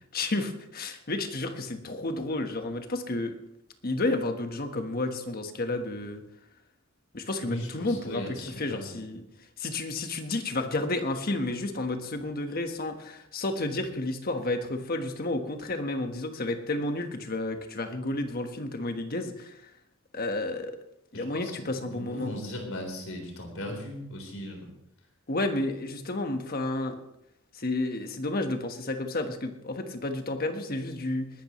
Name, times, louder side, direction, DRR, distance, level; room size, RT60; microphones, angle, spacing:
voice 1, 0.1-3.3 3.8-6.2 7.1-9.2 9.6-19.6 20.1-20.7 21.1-22.3 25.3-27.0 27.5-31.3, left 2 dB, 45° left, 6 dB, 1.4 m, -31 dB
voice 2, 7.4-9.0 21.1-24.7, equal, 75° left, 2 dB, 4.0 m, -38 dB
20.5 x 12.5 x 3.2 m, 0.81 s
head